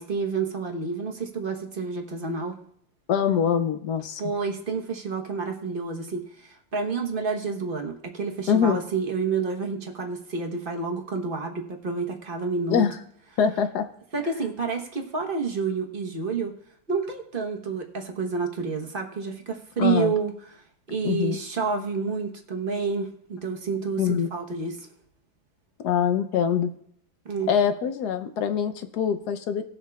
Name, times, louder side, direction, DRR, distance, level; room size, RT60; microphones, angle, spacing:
voice 1, 0.0-2.6 4.2-12.8 14.1-16.5 16.9-20.6 20.9-24.9 27.2-27.5, right 5 dB, 35° right, 2 dB, 0.9 m, -29 dB
voice 2, 3.1-4.2 8.5-8.8 12.7-13.0 13.4-13.8 19.8-20.1 21.0-21.4 24.0-24.3 25.8-26.7 27.5-29.6, left 8 dB, 70° left, 9 dB, 1.0 m, -24 dB
19.0 x 7.2 x 2.3 m, 0.68 s
omnidirectional pair, 2.2 m